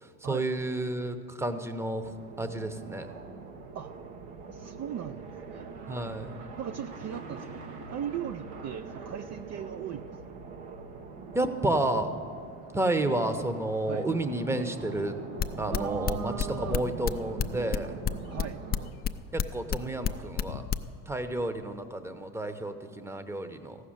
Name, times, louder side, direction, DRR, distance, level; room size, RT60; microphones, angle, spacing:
voice 1, 0.2-2.1 2.4-3.1 5.9-6.4 11.3-12.1 12.7-15.2 15.6-18.0 19.3-20.6 21.1-23.8, right 1 dB, 5° right, 9 dB, 0.8 m, -31 dB
sound 1, 2.0-18.9, right 4 dB, 90° right, 1.2 m, -43 dB
voice 2, 4.5-5.7 6.6-7.5 7.9-10.1 13.9-14.1 15.7-16.9 18.3-18.6 19.8-20.3, right 9 dB, 45° right, 8 dB, 0.5 m, -38 dB
Chruch bells on a sunday morning, 11.7-11.9 12.4-20.7, left 8 dB, 70° left, 0.6 m, -49 dB
sound 2, 15.4-20.8, left 8 dB, 25° left, 0.4 m, -28 dB
14.0 x 6.4 x 8.7 m, 2.2 s
supercardioid pair, 85°, 37 cm